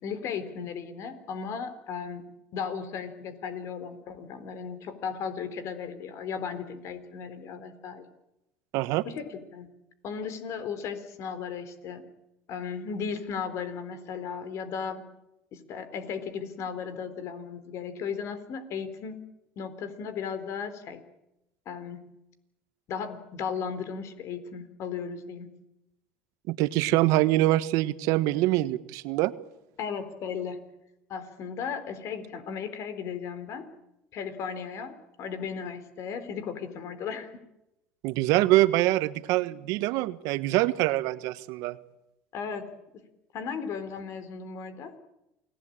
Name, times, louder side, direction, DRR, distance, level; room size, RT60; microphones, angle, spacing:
voice 1, 0.0-2.2 2.5-8.1 9.0-9.7 10.0-12.1 12.5-15.0 15.5-19.2 19.6-21.0 21.7-22.0 22.9-25.5 29.8-30.7 31.1-33.7 34.1-37.3 42.3-42.7 43.3-44.9, left 6 dB, 55° left, 11 dB, 3.9 m, -36 dB
voice 2, 8.7-9.0 26.5-29.3 38.0-41.8, right 17 dB, 65° right, 14 dB, 1.3 m, -24 dB
28.5 x 18.5 x 8.8 m, 0.89 s
hypercardioid pair, 80°, 6 cm